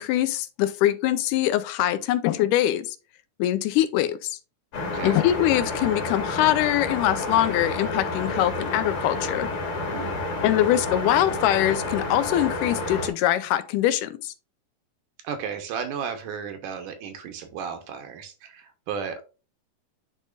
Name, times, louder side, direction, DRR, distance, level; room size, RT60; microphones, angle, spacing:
voice 1, 0.0-2.9 3.4-4.4 5.0-9.5 10.4-14.3, left 13 dB, 90° left, 2.1 m, -23 dB
sound 1, 4.7-13.1, left 2 dB, 65° left, 3.1 m, -30 dB
voice 2, 9.9-10.3 15.2-19.2, right 7 dB, 80° right, 2.5 m, -34 dB
10.5 x 3.7 x 2.4 m
omnidirectional pair, 3.7 m